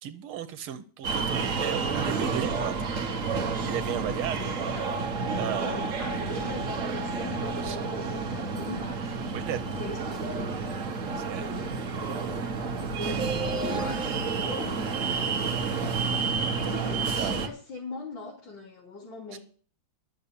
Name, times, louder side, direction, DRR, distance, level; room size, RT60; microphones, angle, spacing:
voice 1, 0.0-2.9 3.7-4.5 5.3-5.7 7.6-7.8 9.3-9.6 11.0-11.5 16.4-16.9 17.2-17.4 19.3-19.4, right 10 dB, 85° right, 8 dB, 1.7 m, -35 dB
sound 1, 1.0-17.5, right 4 dB, 45° right, 1.4 m, -30 dB
voice 2, 5.6-9.4 9.7-10.6 12.9-14.9 16.6-19.4, left 3 dB, 60° left, -4 dB, 3.9 m, -41 dB
12.0 x 6.7 x 8.5 m, 0.43 s
omnidirectional pair, 2.3 m